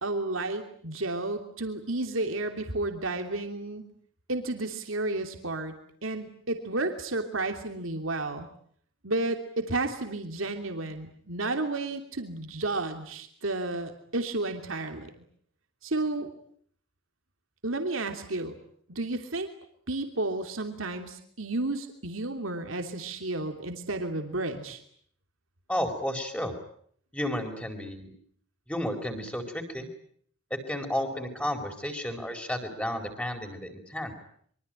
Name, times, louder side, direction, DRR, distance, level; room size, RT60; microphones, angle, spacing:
voice 1, 0.0-3.9 4.3-5.7 6.0-8.5 9.0-15.2 15.8-16.3 17.6-18.6 18.9-19.5 19.9-24.8, right 2 dB, 75° right, 5 dB, 3.0 m, -32 dB
voice 2, 25.7-26.5 27.1-28.1 28.7-29.9 30.5-34.1, left 1 dB, 5° left, 5 dB, 4.7 m, -32 dB
25.5 x 24.0 x 9.0 m, 0.63 s
head